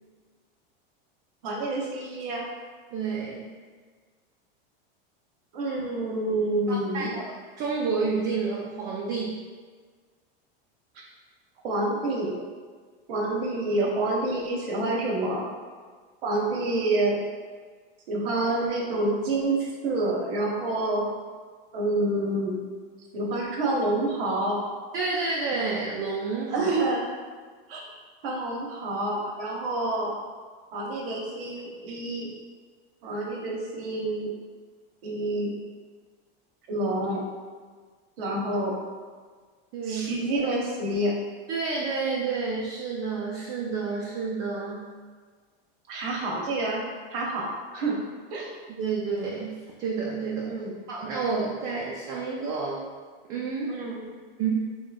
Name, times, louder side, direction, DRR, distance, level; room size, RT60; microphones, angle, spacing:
voice 1, 1.4-2.5 5.5-7.1 11.0-11.1 11.6-12.4 13.1-15.5 16.2-17.2 18.1-21.0 21.7-22.6 23.1-24.6 26.5-27.0 27.7-27.8 28.2-30.1 30.7-32.3 33.0-34.3 35.0-35.5 36.7-37.2 38.2-38.8 39.9-41.1 45.9-46.8 47.1-48.0 48.3-48.5 50.5-50.7 53.7-54.0, right 2 dB, 75° right, -2 dB, 0.9 m, -28 dB
voice 2, 2.9-3.5 6.7-7.2 7.6-9.4 24.9-26.7 39.7-40.1 41.5-44.9 48.7-50.6 50.9-52.8 53.3-53.8 54.4-54.7, right 4 dB, 40° right, -3 dB, 0.4 m, -29 dB
3.2 x 3.0 x 2.2 m, 1.5 s
supercardioid pair, 140°, 29 cm